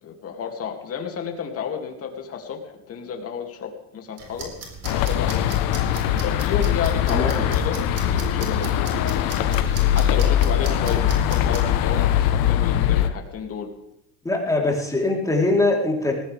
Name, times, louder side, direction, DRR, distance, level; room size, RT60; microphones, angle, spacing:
voice 1, 0.0-4.5 4.9-5.5 6.2-7.8 8.1-8.9 9.9-13.7, left 6 dB, 40° left, 2 dB, 2.8 m, -31 dB
sound 1, 4.2-11.6, right 4 dB, 45° right, 4.1 m, -39 dB
sound 2, 4.8-13.1, left 10 dB, 65° left, 1.3 m, -21 dB
voice 2, 7.1-7.5 14.2-16.1, left 2 dB, 10° left, -1 dB, 3.9 m, -22 dB
19.5 x 16.0 x 3.6 m, 0.81 s
supercardioid pair, 115°, 35 cm